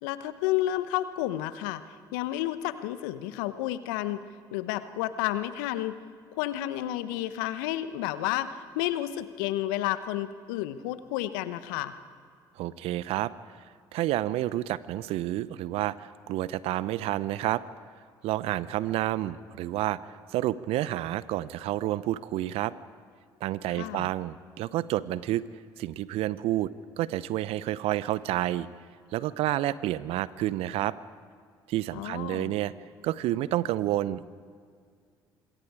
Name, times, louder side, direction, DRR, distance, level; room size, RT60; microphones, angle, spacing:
voice 1, 0.0-1.8 2.1-4.2 4.5-6.0 6.4-11.9 23.7-24.1 31.9-32.5, left 14 dB, 75° left, 13 dB, 1.0 m, -31 dB
voice 2, 12.6-13.3 13.9-17.6 18.2-22.7 23.4-25.4 25.8-26.7 27.0-28.7 29.1-30.9 31.7-32.7 33.0-34.2, right 14 dB, 65° right, 17 dB, 0.8 m, -29 dB
26.5 x 22.5 x 4.9 m, 2.1 s
hypercardioid pair, 55°, 11 cm